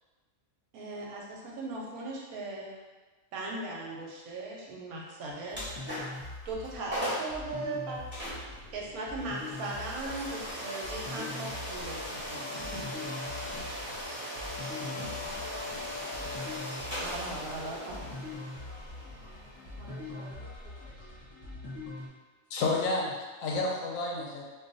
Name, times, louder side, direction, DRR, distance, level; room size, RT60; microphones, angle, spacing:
voice 1, 0.7-2.7 3.3-5.6 6.4-8.0 8.7-12.6 13.0-13.5 14.7-15.3 17.0-18.3, right 2 dB, 90° right, -2 dB, 1.1 m, -38 dB
sound 1, 5.3-22.1, left 2 dB, 30° left, 0.7 m, -44 dB
sound 2, 5.5-6.3 6.6-6.7 6.9-7.4 8.1-20.8, left 1 dB, 10° right, 0.7 m, -39 dB
voice 2, 15.0-16.7 19.7-21.2, right 2 dB, 55° right, -9 dB, 0.7 m, -52 dB
voice 3, 22.5-24.4, left 2 dB, 70° left, -1 dB, 0.9 m, -30 dB
2.5 x 2.3 x 3.9 m, 1.3 s
omnidirectional pair, 1.5 m